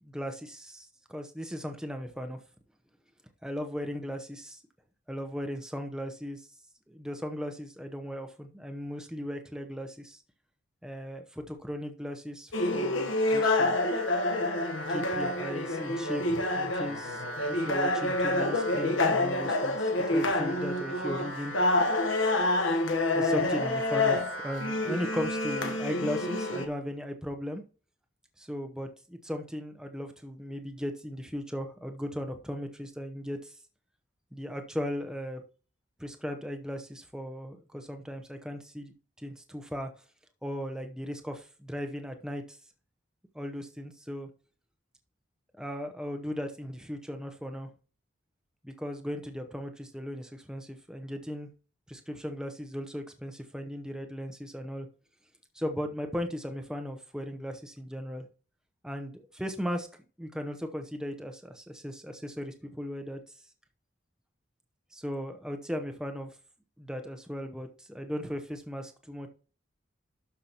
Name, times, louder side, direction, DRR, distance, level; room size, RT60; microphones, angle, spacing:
voice 1, 0.0-2.4 3.4-4.6 5.1-6.5 6.9-10.2 10.8-13.8 14.9-17.2 17.5-21.5 23.1-27.6 28.4-33.6 34.3-35.4 36.0-38.9 39.2-39.9 40.4-42.6 43.3-44.3 45.6-47.7 48.6-51.5 51.9-54.9 55.5-58.3 58.8-59.9 60.2-63.4 64.9-66.3 66.8-69.3, equal, 5° right, 5 dB, 0.8 m, -37 dB
sound 1, 12.5-26.7, left 2 dB, 90° left, 1.2 m, -28 dB
12.0 x 5.7 x 3.0 m, 0.37 s
head